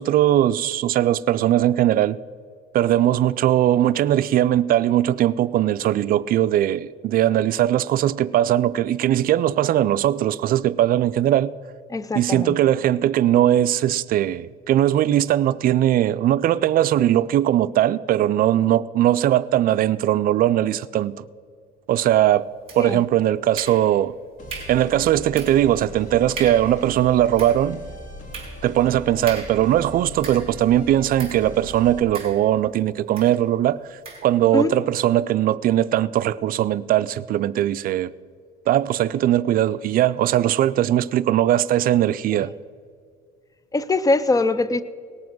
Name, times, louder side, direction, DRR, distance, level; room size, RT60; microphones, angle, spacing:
voice 1, 0.0-2.2 2.7-11.6 12.1-21.2 21.9-22.5 22.7-24.1 24.7-27.8 28.6-38.1 38.7-42.5, right 12 dB, 60° right, 0.4 m, -20 dB
voice 2, 11.9-12.6 22.8-23.0 34.5-34.7 43.7-44.8, left 3 dB, 20° left, 0.5 m, -22 dB
sound 1, 22.7-23.1 23.6-24.1 24.5-24.9 25.4-25.7 26.0-26.1 26.4-26.8 27.2-30.7 31.2-31.5 32.1-32.7 33.2-33.4 34.0-34.3, right 4 dB, 35° right, 4.4 m, -38 dB
sound 2, 24.4-32.0, left 1 dB, 50° left, 2.9 m, -39 dB
18.5 x 7.2 x 6.1 m
cardioid pair, 110°, 17 cm